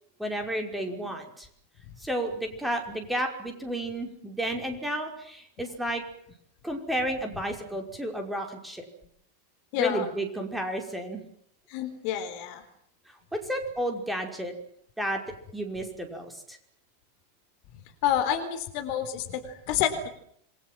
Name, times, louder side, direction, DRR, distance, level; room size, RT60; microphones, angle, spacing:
voice 1, 0.2-1.5 2.0-6.0 6.6-8.8 9.7-11.2 13.3-14.5 15.0-15.2 15.5-16.6, right 1 dB, 5° right, 4 dB, 5.5 m, -32 dB
voice 2, 9.7-10.1 11.7-12.6 18.0-20.1, left 10 dB, 45° left, 8 dB, 3.9 m, -28 dB
28.0 x 22.5 x 7.7 m, 0.69 s
figure-of-eight pair, 90°, 0 cm